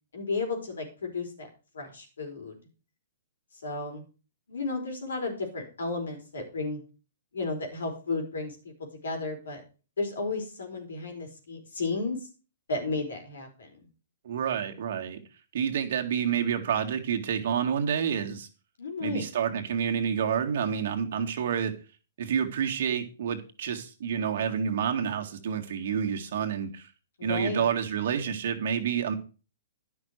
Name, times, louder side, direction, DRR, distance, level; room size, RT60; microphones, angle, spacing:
voice 1, 0.1-1.5 1.7-2.6 3.6-4.0 4.5-6.8 7.3-9.6 10.0-12.3 12.7-13.9 18.8-19.2 27.2-27.6, left 3 dB, 80° left, 4 dB, 4.3 m, -33 dB
voice 2, 14.2-15.2 15.5-18.5 19.0-21.7 22.2-26.9 27.2-29.1, right 8 dB, 60° right, 4 dB, 1.9 m, -29 dB
10.5 x 6.2 x 6.5 m, 0.35 s
hypercardioid pair, 135°, 0 cm